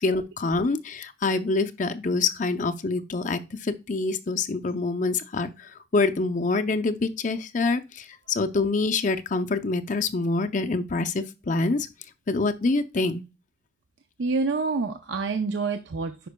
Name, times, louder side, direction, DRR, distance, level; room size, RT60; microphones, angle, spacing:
voice 1, 0.0-11.9 12.3-13.2, left 3 dB, 45° left, 0.5 m, -26 dB
voice 2, 14.2-16.3, right 4 dB, 90° right, 0.6 m, -27 dB
10.0 x 5.2 x 2.2 m
head